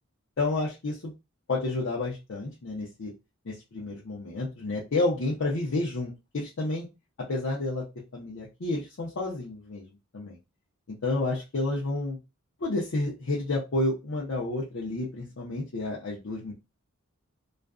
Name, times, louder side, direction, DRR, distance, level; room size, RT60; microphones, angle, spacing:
voice 1, 0.4-1.1 1.5-3.1 3.4-6.9 7.3-7.8 8.1-9.9 10.1-10.4 10.9-12.2 12.6-16.5, left 2 dB, 65° left, -5 dB, 0.6 m, -30 dB
2.4 x 2.2 x 2.3 m, 0.25 s
head